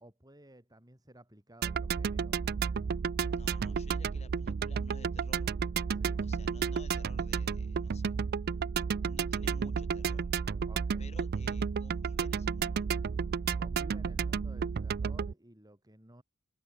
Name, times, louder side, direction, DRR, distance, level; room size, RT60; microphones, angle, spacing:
voice 1, 0.0-2.4 5.9-6.3 10.7-11.1 13.5-16.2, right 1 dB, 15° right, 3.8 m, -55 dB
sound 1, 1.6-15.3, right 6 dB, 45° right, 0.4 m, -32 dB
voice 2, 3.3-5.5 6.2-8.2 9.0-10.3 11.0-12.9, left 2 dB, 30° left, 3.3 m, -54 dB
head